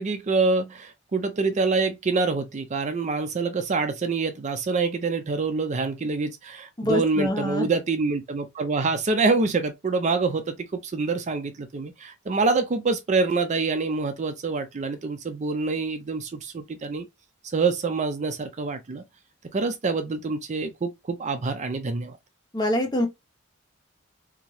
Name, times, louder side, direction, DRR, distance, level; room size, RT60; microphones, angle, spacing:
voice 1, 0.0-10.6 10.8-17.1 17.5-19.0 19.5-22.2, right 4 dB, 35° right, 0.4 m, -26 dB
voice 2, 6.8-7.7 22.5-23.1, left 1 dB, 20° left, 0.9 m, -25 dB
3.6 x 2.7 x 3.1 m
head